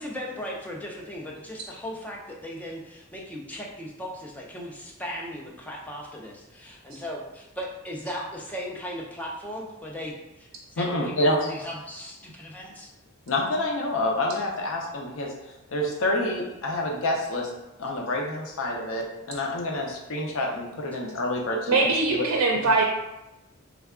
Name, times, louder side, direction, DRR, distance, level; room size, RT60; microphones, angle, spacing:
voice 1, 0.0-12.9, equal, 5° left, -2 dB, 0.5 m, -37 dB
voice 2, 10.8-11.5 13.3-15.3 15.7-17.5 17.8-22.3 22.6-22.7, left 1 dB, 65° left, 0 dB, 0.5 m, -28 dB
voice 3, 21.7-22.8, right 3 dB, 90° right, 0 dB, 0.4 m, -21 dB
3.3 x 2.2 x 3.5 m, 0.95 s
head